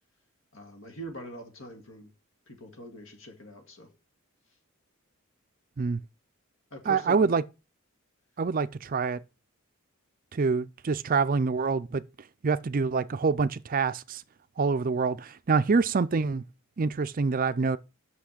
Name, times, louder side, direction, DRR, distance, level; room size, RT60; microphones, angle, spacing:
voice 1, 0.5-2.1 2.5-3.9 6.7-7.4, equal, 60° left, 2.0 m, -43 dB
voice 2, 6.9-7.4 8.4-9.2 10.3-12.0 12.4-14.2 14.6-16.4 16.8-17.8, right 4 dB, 40° right, 0.4 m, -26 dB
6.0 x 5.9 x 6.5 m
head